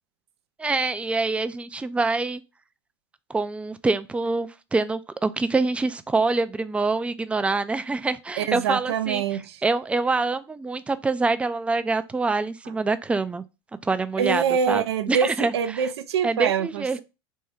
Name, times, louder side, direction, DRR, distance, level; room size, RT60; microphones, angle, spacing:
voice 1, 0.6-2.4 3.3-9.2 9.6-13.4 13.8-15.9 16.2-17.0, right 3 dB, 10° right, 0.3 m, -25 dB
voice 2, 8.4-9.6 14.2-17.0, right 7 dB, 90° right, 0.4 m, -25 dB
3.5 x 2.2 x 4.3 m
hypercardioid pair, 100°, 13 cm